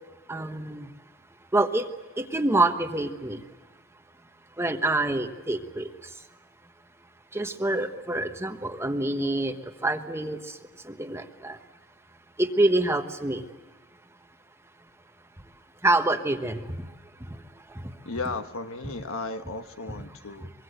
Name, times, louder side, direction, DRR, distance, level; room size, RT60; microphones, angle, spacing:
voice 1, 0.3-0.9 1.5-1.9 2.2-3.4 4.6-5.9 7.3-9.5 9.8-10.4 10.8-11.6 12.4-13.4 15.8-16.7 17.3-17.4, right 2 dB, 10° right, 7 dB, 1.1 m, -26 dB
voice 2, 18.0-20.5, left 3 dB, 70° left, 8 dB, 1.4 m, -35 dB
24.0 x 23.0 x 7.9 m, 1.2 s
head